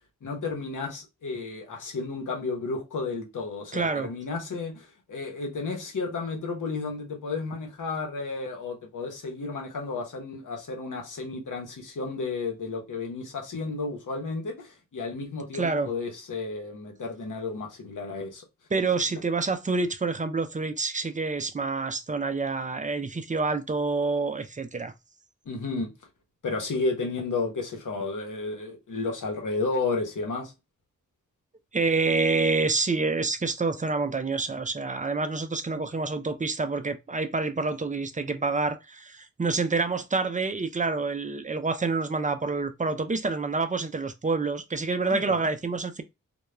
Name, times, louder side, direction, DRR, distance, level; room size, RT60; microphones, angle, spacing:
voice 1, 0.2-18.4 25.5-25.9 26.4-30.5 45.0-45.5, left 3 dB, 70° left, 0.9 m, -32 dB
voice 2, 3.7-4.1 15.5-15.9 18.7-24.9 31.7-46.0, right 3 dB, 25° right, 0.4 m, -27 dB
2.2 x 2.2 x 3.0 m
cardioid pair, 45°, 32 cm